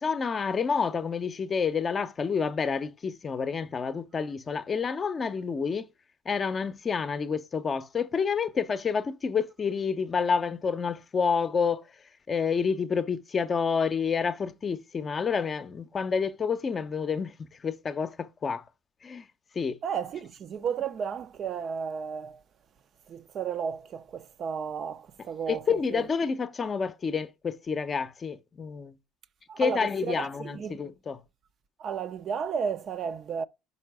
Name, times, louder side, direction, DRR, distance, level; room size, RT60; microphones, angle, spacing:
voice 1, 0.0-5.9 6.3-12.0 12.3-18.6 19.0-19.3 19.5-19.8 25.5-29.0 29.6-31.2, left 6 dB, 35° left, 0.6 m, -29 dB
voice 2, 19.8-22.4 23.1-26.0 29.5-30.8 31.8-33.4, right 7 dB, 45° right, 0.5 m, -33 dB
5.4 x 4.6 x 4.7 m
supercardioid pair, 85°, 0 cm